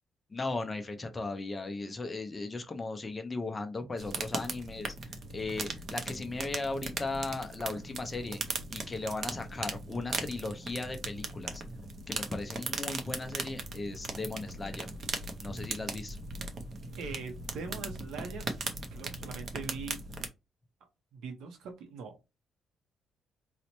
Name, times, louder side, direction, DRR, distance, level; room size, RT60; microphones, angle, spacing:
voice 1, 0.3-11.6 12.1-14.9 15.4-16.2, left 3 dB, 20° left, 0.4 m, -37 dB
sound 1, 4.0-20.3, right 3 dB, 40° right, 0.5 m, -38 dB
voice 2, 17.0-18.5 18.9-20.0 21.1-22.2, right 5 dB, 80° right, 0.7 m, -42 dB
4.0 x 2.1 x 2.9 m
cardioid pair, 170°, 0 cm